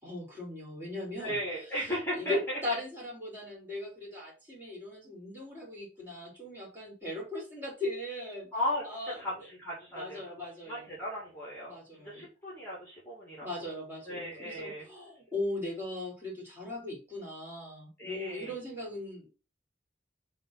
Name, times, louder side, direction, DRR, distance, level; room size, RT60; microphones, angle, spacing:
voice 1, 0.0-1.3 2.2-8.5 8.8-9.2 10.0-10.9 11.6-12.3 13.4-19.3, left 2 dB, 10° right, -4 dB, 3.6 m, -38 dB
voice 2, 1.2-2.6 8.5-8.8 9.2-11.7 12.0-13.5 14.0-14.8 18.0-18.5, equal, 10° left, -5 dB, 2.2 m, -36 dB
5.3 x 3.6 x 5.8 m, 0.32 s
head